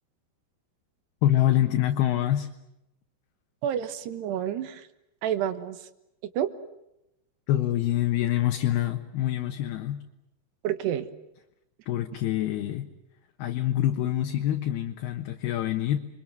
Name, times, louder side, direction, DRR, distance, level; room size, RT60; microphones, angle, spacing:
voice 1, 1.2-2.5 7.5-10.0 11.9-12.9 13.4-16.0, left 12 dB, 70° left, 4 dB, 3.0 m, -25 dB
voice 2, 3.6-4.9 5.2-5.8 6.4-6.5 10.6-11.1, right 10 dB, 75° right, 11 dB, 3.4 m, -29 dB
29.5 x 23.5 x 7.8 m, 0.86 s
omnidirectional pair, 5.0 m